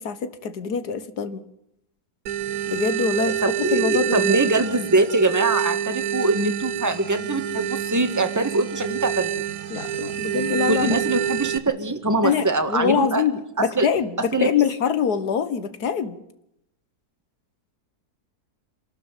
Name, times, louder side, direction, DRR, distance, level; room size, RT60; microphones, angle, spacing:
voice 1, 0.0-1.4 2.7-4.4 9.7-11.0 12.2-16.2, left 7 dB, 90° left, 1.9 m, -24 dB
sound 1, 2.3-11.6, right 10 dB, 70° right, 1.5 m, -27 dB
voice 2, 3.4-9.3 10.7-13.2 13.6-13.9 14.3-14.5, right 2 dB, 10° right, 1.8 m, -23 dB
26.5 x 13.0 x 9.2 m
omnidirectional pair, 1.6 m